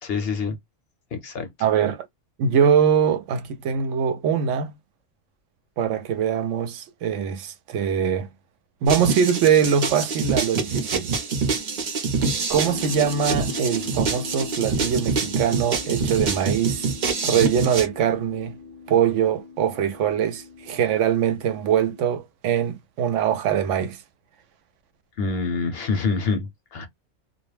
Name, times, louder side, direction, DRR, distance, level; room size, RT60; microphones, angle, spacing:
voice 1, 0.0-0.6 1.1-1.5 25.2-26.9, left 4 dB, 60° left, 0.8 m, -26 dB
voice 2, 1.6-2.1 2.4-4.7 5.8-8.3 8.8-11.1 12.5-16.9 17.2-18.5 18.9-24.0, right 8 dB, 75° right, 0.9 m, -22 dB
sound 1, 8.9-17.9, right 4 dB, 50° right, 0.6 m, -26 dB
sound 2, 12.5-22.1, left 4 dB, 15° right, 0.8 m, -40 dB
2.3 x 2.1 x 3.1 m
omnidirectional pair, 1.3 m